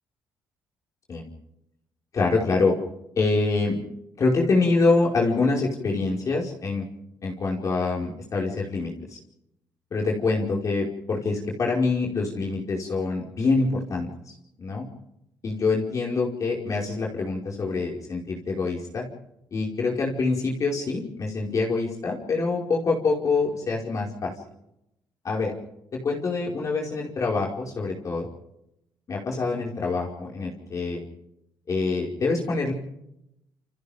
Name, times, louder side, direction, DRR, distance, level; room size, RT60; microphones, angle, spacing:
voice 1, 2.1-2.8 3.2-3.8 4.2-6.8 7.2-9.2 9.9-14.8 15.4-19.0 19.5-24.3 25.2-25.5 25.9-28.3 29.1-31.0 31.7-32.7, left 3 dB, 45° left, -2 dB, 5.1 m, -25 dB
28.5 x 27.5 x 3.6 m, 0.82 s
cardioid pair, 90°, 8 cm